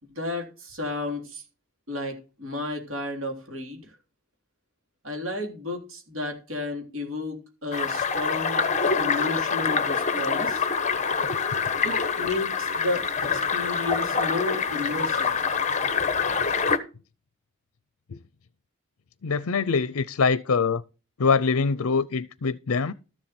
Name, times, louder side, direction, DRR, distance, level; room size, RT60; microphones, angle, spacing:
voice 1, 0.0-1.4 1.9-4.0 5.0-8.7 9.0-10.6 11.8-15.3, left 2 dB, 65° right, 3.3 m, -32 dB
sound 1, 7.7-16.8, left 5 dB, 35° left, 1.0 m, -25 dB
voice 2, 19.2-20.8 21.2-22.9, left 5 dB, 75° left, 0.5 m, -24 dB
13.0 x 7.5 x 4.3 m
head